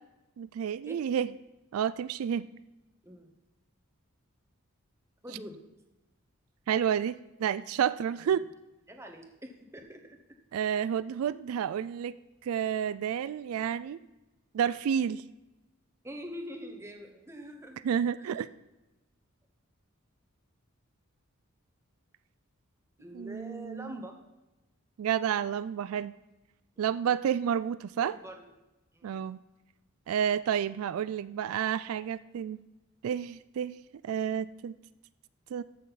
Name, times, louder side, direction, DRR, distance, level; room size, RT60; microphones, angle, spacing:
voice 1, 0.4-1.3 1.7-2.5 6.7-8.4 10.5-12.2 12.4-14.0 14.5-15.2 17.8-18.5 23.1-24.0 25.0-26.1 26.8-28.1 29.0-29.4 30.1-32.6 33.0-33.8 34.0-34.8 35.5-35.6, right 8 dB, 85° right, 16 dB, 0.3 m, -30 dB
voice 2, 5.2-5.6 8.2-8.3 8.9-10.2 16.0-17.9 18.2-18.3 23.0-24.2 26.8-27.0 28.0-28.5 28.9-29.2, equal, 10° right, 4 dB, 1.0 m, -44 dB
14.0 x 6.3 x 4.0 m, 1.0 s
head